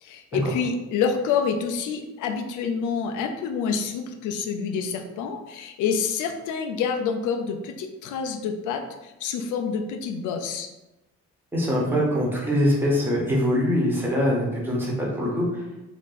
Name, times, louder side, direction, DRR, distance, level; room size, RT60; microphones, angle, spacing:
voice 1, 0.0-10.7, left 6 dB, 85° left, 4 dB, 0.5 m, -27 dB
voice 2, 11.5-15.6, equal, 5° right, -4 dB, 1.2 m, -23 dB
2.9 x 2.6 x 3.9 m, 0.99 s
cardioid pair, 90°, 30 cm